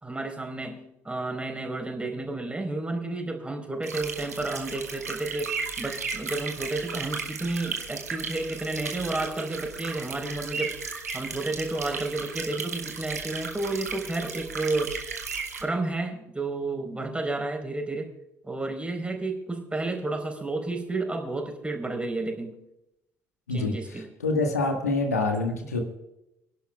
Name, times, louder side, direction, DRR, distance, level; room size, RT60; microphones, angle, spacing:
voice 1, 0.0-10.8 11.1-14.9 15.6-18.1 18.5-22.5 23.5-24.1, right 2 dB, 15° right, 4 dB, 4.3 m, -31 dB
sound 1, 3.8-15.6, right 5 dB, 85° right, 1.5 m, -35 dB
voice 2, 23.5-25.8, left 3 dB, 85° left, 4 dB, 1.6 m, -26 dB
29.0 x 11.5 x 2.4 m, 0.84 s
figure-of-eight pair, 50°, 8 cm